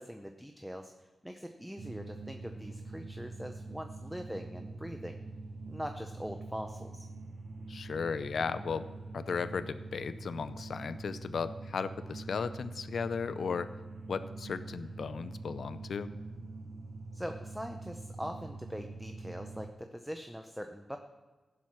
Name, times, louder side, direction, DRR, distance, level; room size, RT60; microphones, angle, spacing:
voice 1, 0.0-5.2 5.7-7.1 17.1-21.0, equal, ahead, 6 dB, 0.6 m, -42 dB
sound 1, 1.8-19.7, right 3 dB, 45° right, 0.8 m, -44 dB
voice 2, 7.7-8.9 9.1-13.7 14.1-16.1, left 5 dB, 70° left, 13 dB, 0.5 m, -35 dB
15.5 x 7.4 x 6.0 m, 1.3 s
wide cardioid pair, 130°, 0 cm